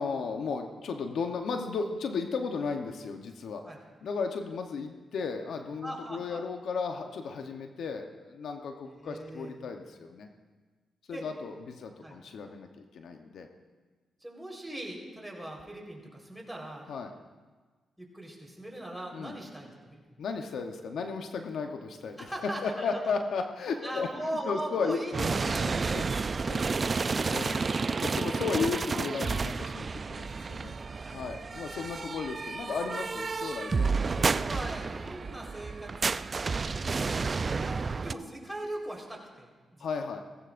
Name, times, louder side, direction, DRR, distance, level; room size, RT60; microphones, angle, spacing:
voice 1, 0.0-3.6 4.0-10.3 11.1-13.5 16.9-17.1 19.1-19.4 20.2-24.1 24.4-26.1 26.5-26.6 27.3-27.6 28.0-30.8 31.1-34.3 39.8-40.2, left 5 dB, 75° left, 4 dB, 0.9 m, -34 dB
voice 2, 5.8-6.4 8.8-9.5 11.1-11.3 12.0-12.2 14.2-16.9 18.0-20.0 22.2-23.1 23.8-25.3 25.7-26.1 26.4-27.1 29.9-30.9 34.2-36.2 37.1-39.9, right 1 dB, 5° right, -1 dB, 4.2 m, -40 dB
sound 1, 25.1-38.1, right 4 dB, 45° right, 0.3 m, -31 dB
18.0 x 15.5 x 2.6 m, 1.4 s
cardioid pair, 60°, 0 cm